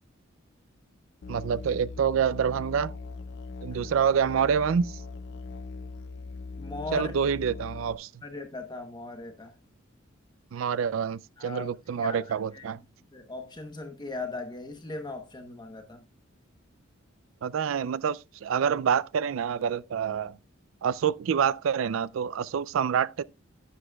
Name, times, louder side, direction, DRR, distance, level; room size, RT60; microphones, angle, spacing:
Musical instrument, 1.2-8.0, left 3 dB, 60° left, 0.4 m, -40 dB
voice 1, 1.3-3.0 3.6-5.0 6.9-8.1 10.5-12.8 17.4-20.4 20.8-23.2, right 7 dB, 85° right, 0.4 m, -27 dB
voice 2, 6.6-7.1 8.2-9.6 11.4-11.7 12.0-12.7 13.1-16.0, left 3 dB, 20° left, 1.0 m, -38 dB
11.0 x 9.9 x 2.3 m
head